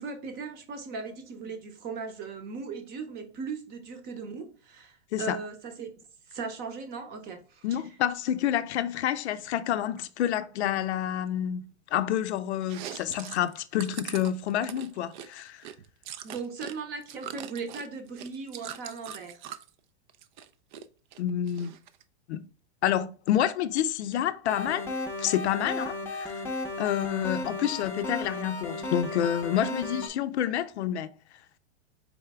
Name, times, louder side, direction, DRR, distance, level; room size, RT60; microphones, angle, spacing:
voice 1, 0.0-4.9 5.2-5.9 6.3-7.6 16.2-19.4, right 4 dB, 25° right, 0.8 m, -38 dB
voice 2, 7.6-15.6 21.2-21.7 22.3-22.4 22.8-24.8 25.2-26.4 26.8-31.1, left 10 dB, 70° left, 0.5 m, -28 dB
Chewing mastication, 12.6-16.8 17.0-19.7 20.1-20.8 21.1-22.0, right 10 dB, 45° right, 0.4 m, -42 dB
sound 1, 24.5-30.1, left 2 dB, 5° left, 0.6 m, -34 dB
4.2 x 3.3 x 3.4 m
hypercardioid pair, 140°, 34 cm